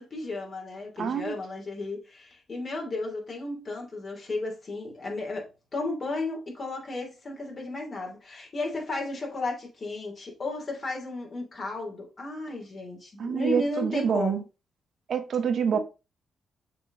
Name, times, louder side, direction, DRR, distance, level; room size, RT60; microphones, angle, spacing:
voice 1, 0.0-14.4 15.7-15.8, left 2 dB, 50° left, 2.9 m, -34 dB
voice 2, 1.0-1.4 13.2-14.4 15.1-15.8, right 7 dB, 65° right, 0.8 m, -26 dB
6.8 x 3.7 x 3.7 m
supercardioid pair, 50°, 0 cm